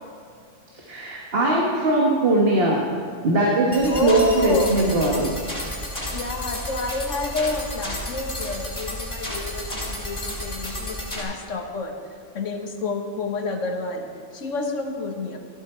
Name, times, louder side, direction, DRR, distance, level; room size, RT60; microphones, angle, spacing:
voice 1, 0.9-2.9 3.2-5.3, right 2 dB, 50° right, -2 dB, 1.7 m, -20 dB
sound 1, 3.7-11.2, left 1 dB, 25° left, 3.4 m, -32 dB
voice 2, 3.9-4.8 6.1-9.6 10.0-11.9 12.3-14.0 14.4-15.4, left 2 dB, 85° left, 3 dB, 1.7 m, -28 dB
14.5 x 12.5 x 4.5 m, 2.3 s
omnidirectional pair, 1.3 m